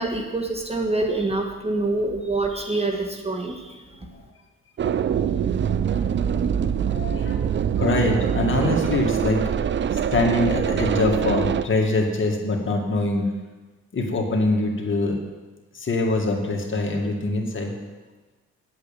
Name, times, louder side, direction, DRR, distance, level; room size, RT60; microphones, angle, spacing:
voice 1, 0.0-3.8, right 2 dB, 20° right, 3 dB, 1.5 m, -26 dB
sound 1, 4.8-11.6, right 8 dB, 40° right, 0.5 m, -24 dB
voice 2, 6.9-7.5 7.8-9.4 10.1-13.3 13.9-15.2 15.7-17.7, left 2 dB, 40° left, 1 dB, 2.1 m, -24 dB
8.3 x 8.0 x 8.9 m, 1.2 s
cardioid pair, 90°, 30 cm